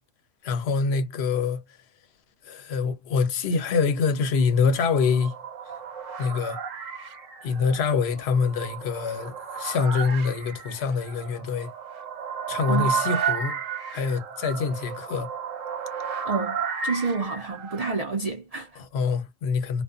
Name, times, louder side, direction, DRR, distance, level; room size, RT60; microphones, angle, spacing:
voice 1, 0.4-1.6 2.4-5.3 6.2-6.6 7.4-11.7 12.5-13.6 13.9-15.3 18.9-19.8, left 5 dB, 60° left, 0.8 m, -25 dB
sound 1, 4.5-18.0, right 6 dB, 80° right, 1.2 m, -33 dB
voice 2, 16.2-18.8, right 4 dB, 60° right, 0.4 m, -29 dB
2.5 x 2.2 x 2.4 m
omnidirectional pair, 1.3 m